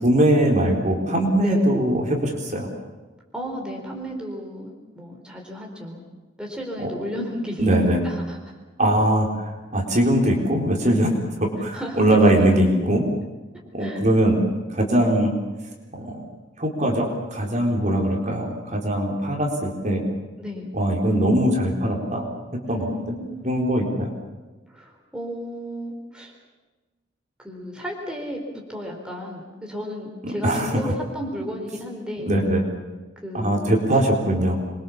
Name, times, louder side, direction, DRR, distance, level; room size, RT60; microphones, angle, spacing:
voice 1, 0.0-2.7 6.8-6.9 7.6-8.0 8.8-9.3 9.7-13.0 13.7-14.4 14.7-15.3 15.9-16.3 16.6-20.0 20.7-22.2 22.7-22.9 23.4-24.1 30.2-30.7 32.3-32.6 33.3-34.6, right 1 dB, 40° right, 0 dB, 4.2 m, -21 dB
voice 2, 3.3-6.0 6.4-8.4 11.7-12.0 13.8-14.1 20.4-20.7 22.7-23.5 24.7-26.3 27.4-32.3 33.2-33.7, equal, 5° right, 0 dB, 4.3 m, -33 dB
26.5 x 23.0 x 7.3 m, 1.2 s
head